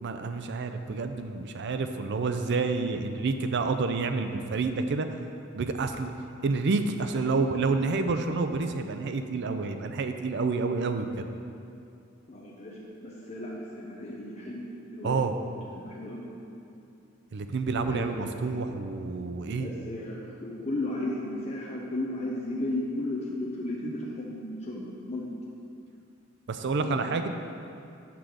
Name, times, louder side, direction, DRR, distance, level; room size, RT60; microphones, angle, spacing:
voice 1, 0.0-5.1 5.5-6.1 6.4-11.2 15.0-15.3 17.3-19.7 26.5-27.3, right 4 dB, 60° right, 7 dB, 0.5 m, -29 dB
voice 2, 12.3-15.2 15.7-16.3 17.8-18.5 19.5-25.3 26.8-27.1, left 1 dB, 35° left, -4 dB, 0.7 m, -35 dB
5.9 x 5.0 x 6.1 m, 2.6 s
head